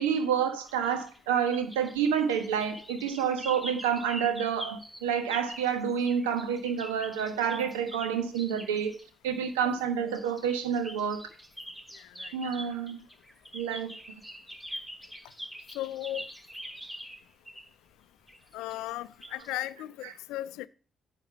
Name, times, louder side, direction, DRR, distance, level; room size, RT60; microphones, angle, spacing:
voice 1, 0.0-8.9 9.2-11.2 12.3-13.0 13.5-13.9 20.0-20.1, right 7 dB, 85° right, 1.2 m, -29 dB
sound 1, 0.7-9.0 10.1-17.7 18.3-18.9 19.2-19.5, equal, 10° right, 3.6 m, -44 dB
voice 2, 15.8-16.3 18.5-20.7, left 15 dB, 75° left, 0.4 m, -36 dB
9.3 x 5.3 x 6.7 m
hypercardioid pair, 45°, 0 cm